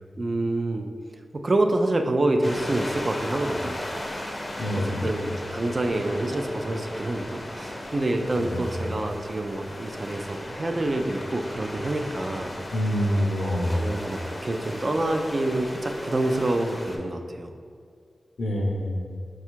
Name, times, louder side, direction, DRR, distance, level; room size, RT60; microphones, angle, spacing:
voice 1, 0.2-0.9 1.3-3.8 4.8-12.6 12.8-12.9 13.4-17.5, right 2 dB, 40° right, 5 dB, 0.3 m, -27 dB
sound 1, 2.4-17.0, left 1 dB, 25° left, 0.5 m, -36 dB
voice 2, 4.6-5.1 8.4-8.6 12.7-13.8 18.4-19.1, equal, 75° left, 1 dB, 0.6 m, -26 dB
4.9 x 2.3 x 4.4 m, 2.2 s
wide cardioid pair, 105°, 0 cm